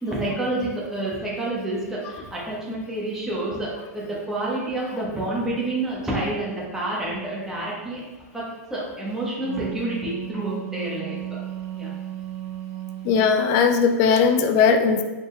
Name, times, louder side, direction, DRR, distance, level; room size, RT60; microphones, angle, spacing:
voice 1, 0.0-8.0 8.3-11.4 11.7-11.9, right 2 dB, 5° right, -6 dB, 1.0 m, -29 dB
Wind instrument woodwind instrument, 9.2-13.4, right 12 dB, 55° right, 0.4 m, -34 dB
voice 2, 13.0-15.0, left 5 dB, 40° left, 6 dB, 0.3 m, -18 dB
4.0 x 3.6 x 2.2 m, 1.2 s
hypercardioid pair, 120°, 9 cm